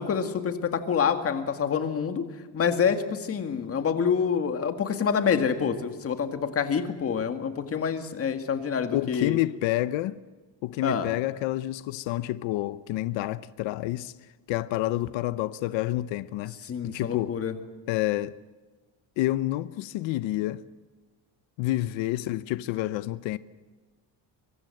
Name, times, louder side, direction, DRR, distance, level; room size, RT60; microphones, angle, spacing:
voice 1, 0.0-2.2 2.5-9.4 10.8-11.1 16.6-17.5, left 6 dB, 30° left, 2.0 m, -27 dB
voice 2, 8.9-10.2 10.6-16.6 16.8-17.4 17.9-18.4 19.2-20.6 21.6-23.4, left 16 dB, 90° left, 0.9 m, -29 dB
24.0 x 23.5 x 7.8 m
cardioid pair, 175°, 44 cm